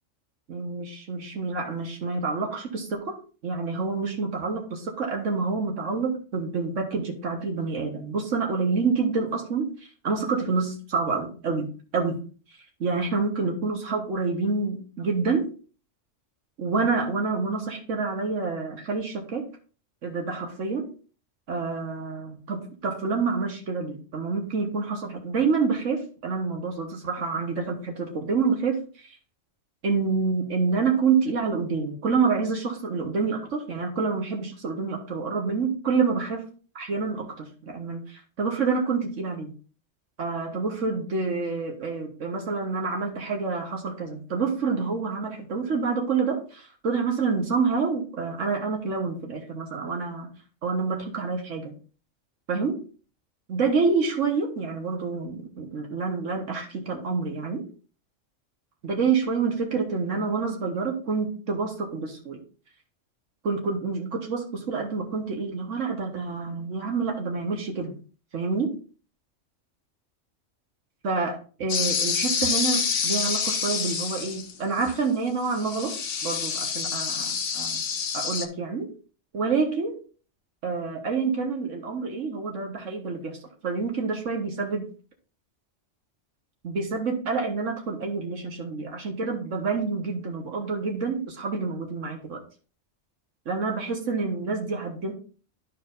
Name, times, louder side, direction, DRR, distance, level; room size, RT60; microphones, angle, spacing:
voice 1, 0.5-3.2 3.4-12.2 12.8-15.5 16.6-19.5 20.0-20.9 21.5-29.2 29.8-36.5 36.8-39.5 40.2-50.3 50.6-51.7 52.5-52.8 53.5-57.6 58.8-62.4 63.4-68.0 68.3-68.8 71.0-76.0 76.2-77.8 78.1-78.9 79.3-80.0 80.6-83.4 83.6-84.8 86.6-92.4 93.5-95.1, right 4 dB, 80° right, 2 dB, 1.6 m, -27 dB
sound 1, 71.7-74.5 74.8-75.0 75.5-78.5, left 6 dB, 55° left, 1.0 m, -27 dB
12.5 x 4.6 x 2.6 m, 0.38 s
omnidirectional pair, 1.3 m